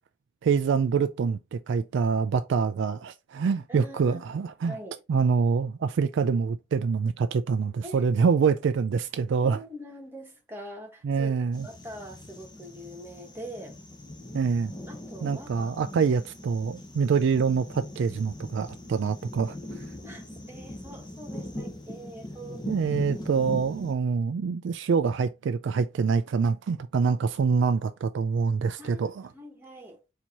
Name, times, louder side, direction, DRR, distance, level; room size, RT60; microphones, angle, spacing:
voice 1, 0.4-4.7 5.1-9.6 11.0-11.7 14.3-14.7 15.2-19.6 22.7-29.3, right 5 dB, 60° right, 0.3 m, -25 dB
voice 2, 3.7-4.3 4.6-5.0 7.8-8.1 9.4-11.3 11.6-13.8 14.9-15.8 20.0-22.9 28.8-30.0, equal, 10° right, 1.2 m, -43 dB
sound 1, 11.5-23.9, left 1 dB, 20° left, 0.9 m, -41 dB
4.5 x 2.8 x 4.1 m
head